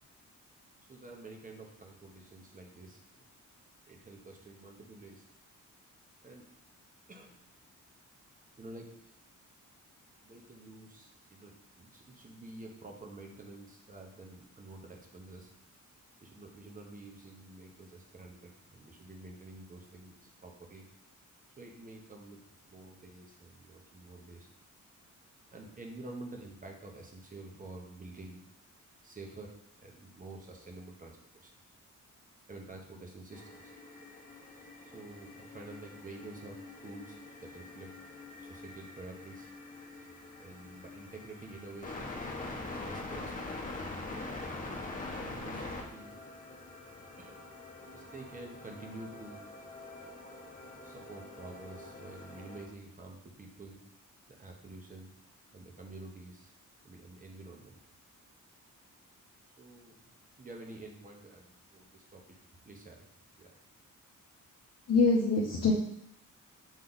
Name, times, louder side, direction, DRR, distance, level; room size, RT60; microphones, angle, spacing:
voice 1, 0.9-3.0 3.9-5.3 6.2-6.5 7.1-7.4 8.6-9.1 10.2-15.5 16.2-20.8 21.6-22.4 22.7-24.5 25.2-28.4 29.0-31.5 32.5-33.7 34.9-37.9 38.4-39.5 40.4-42.1 42.9-43.7 44.5-46.1 47.2-47.4 47.9-49.4 50.8-53.8 54.3-55.1 55.5-56.5 56.8-57.8 59.6-60.0 60.4-62.4 62.6-63.1 63.4-63.6, right 2 dB, 25° right, 1 dB, 1.0 m, -49 dB
sound 1, 33.3-52.6, left 2 dB, 25° left, 1.1 m, -44 dB
voice 2, 64.9-65.7, left 4 dB, 55° left, -3 dB, 0.8 m, -24 dB
7.2 x 3.3 x 4.0 m, 0.72 s
wide cardioid pair, 145°, 32 cm